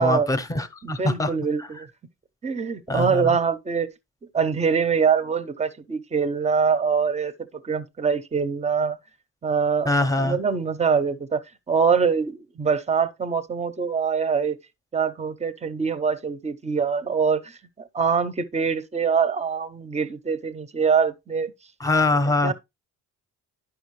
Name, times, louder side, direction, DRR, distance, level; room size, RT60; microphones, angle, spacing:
voice 1, 0.0-1.3 1.6-1.7 2.9-3.3 9.9-10.4 21.8-22.5, left 2 dB, 10° left, 0.8 m, -23 dB
voice 2, 0.8-1.9 2.4-3.9 4.3-7.3 7.6-9.0 9.4-14.6 14.9-21.5 22.4-22.5, right 6 dB, 20° right, 0.7 m, -24 dB
10.5 x 6.1 x 3.1 m
cardioid pair, 135°, 32 cm